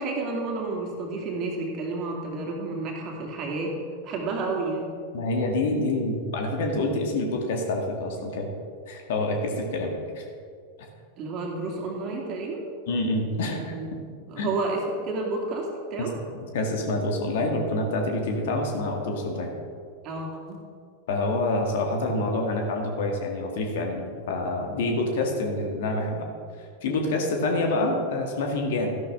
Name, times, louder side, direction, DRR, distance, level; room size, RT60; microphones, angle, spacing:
voice 1, 0.0-3.7 4.0-4.9 11.2-12.6 13.7-13.9 14.3-16.1 20.0-20.6 26.8-27.0, right 3 dB, 35° right, 0 dB, 2.4 m, -30 dB
voice 2, 5.1-8.5 8.9-10.2 12.9-13.8 14.4-14.6 16.0-16.1 16.5-19.5 21.1-26.3 26.8-29.0, left 2 dB, 55° left, 2 dB, 1.7 m, -27 dB
13.0 x 11.5 x 3.6 m, 2.2 s
figure-of-eight pair, 90°, 0 cm